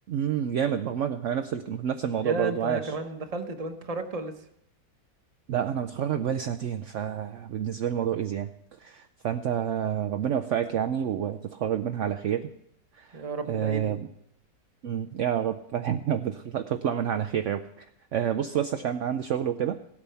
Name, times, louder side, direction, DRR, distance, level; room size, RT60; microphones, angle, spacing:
voice 1, 0.1-2.9 5.5-8.5 8.8-12.5 12.9-13.2 13.5-14.1 14.8-17.8 18.1-19.8, right 9 dB, 65° right, 8 dB, 0.8 m, -28 dB
voice 2, 2.2-4.3 13.1-13.9, right 2 dB, 30° right, 6 dB, 1.0 m, -33 dB
16.5 x 8.9 x 5.6 m, 0.77 s
omnidirectional pair, 1.6 m